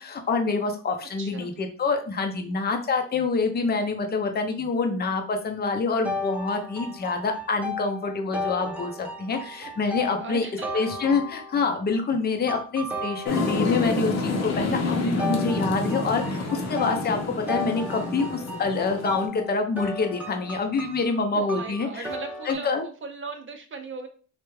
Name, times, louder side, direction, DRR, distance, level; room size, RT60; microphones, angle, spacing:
voice 1, 0.0-10.5 10.7-22.1 22.4-22.9, left 4 dB, 30° left, 4 dB, 0.7 m, -26 dB
voice 2, 1.2-1.5 9.9-10.9 21.3-24.1, right 4 dB, 40° right, 5 dB, 0.6 m, -38 dB
sound 1, 6.0-11.8 12.5-14.1 15.2-22.5, left 1 dB, 5° right, 0.7 m, -35 dB
sound 2, 13.3-19.3, left 2 dB, 60° left, 0.9 m, -28 dB
3.4 x 2.4 x 3.1 m, 0.39 s
cardioid pair, 90°, 30 cm